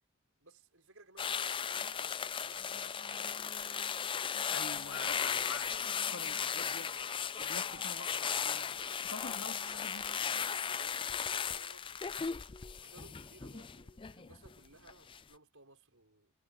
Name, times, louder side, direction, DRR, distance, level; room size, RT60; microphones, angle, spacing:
voice 1, 0.4-3.3 6.2-6.4 9.5-12.4 12.8-16.3, right 2 dB, 65° right, 6.3 m, -60 dB
sound 1, 1.2-14.5 14.9-15.2, left 7 dB, 25° left, 0.4 m, -36 dB
sound 2, 1.7-12.0, right 2 dB, 30° right, 4.5 m, -59 dB
voice 2, 4.5-8.7 9.0-10.0, left 4 dB, 60° left, 3.0 m, -46 dB
head